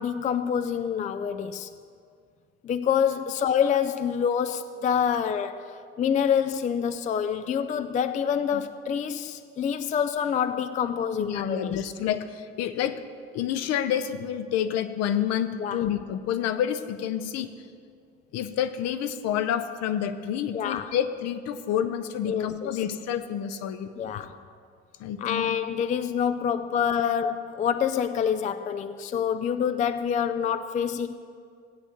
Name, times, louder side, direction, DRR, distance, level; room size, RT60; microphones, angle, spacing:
voice 1, 0.0-1.7 2.6-11.9 15.6-15.8 20.5-20.9 22.3-22.7 24.0-24.4 25.2-31.1, left 8 dB, 25° left, 11 dB, 0.4 m, -27 dB
voice 2, 11.2-13.0 13.3-17.5 18.3-23.9 25.0-25.5 27.0-27.1, left 9 dB, 55° left, 11 dB, 0.7 m, -28 dB
16.0 x 8.9 x 2.9 m, 2.2 s
figure-of-eight pair, 55°, 32 cm